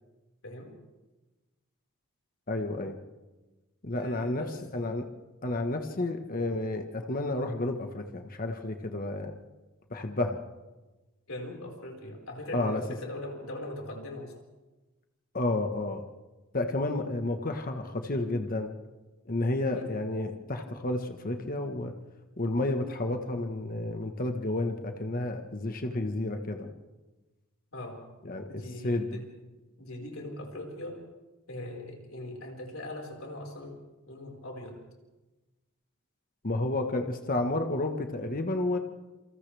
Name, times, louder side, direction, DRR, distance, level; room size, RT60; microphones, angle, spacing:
voice 1, 0.4-0.7 4.0-4.6 11.3-14.3 19.7-19.9 27.7-28.0 28.5-29.4 29.8-31.0 31.5-34.8, left 1 dB, 70° left, 0 dB, 4.9 m, -40 dB
voice 2, 2.5-3.0 3.8-4.4 4.7-5.1 5.4-9.4 9.9-10.4 12.5-12.8 15.3-16.0 16.5-18.7 19.3-21.9 22.4-26.7 28.2-29.1 36.4-38.8, left 2 dB, 40° left, 5 dB, 1.3 m, -31 dB
28.0 x 27.0 x 3.4 m, 1.2 s
head